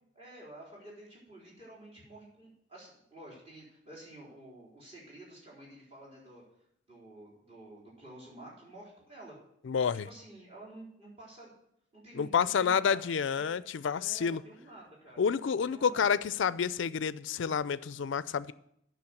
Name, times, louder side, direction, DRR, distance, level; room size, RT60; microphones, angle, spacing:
voice 1, 0.1-6.4 6.9-9.4 10.0-11.5 11.9-13.6 14.0-15.3 15.7-16.2, right 1 dB, 30° right, 4.1 m, -50 dB
voice 2, 9.7-10.1 12.1-14.4 15.2-18.5, left 6 dB, 70° left, 0.4 m, -29 dB
8.7 x 6.3 x 7.7 m
head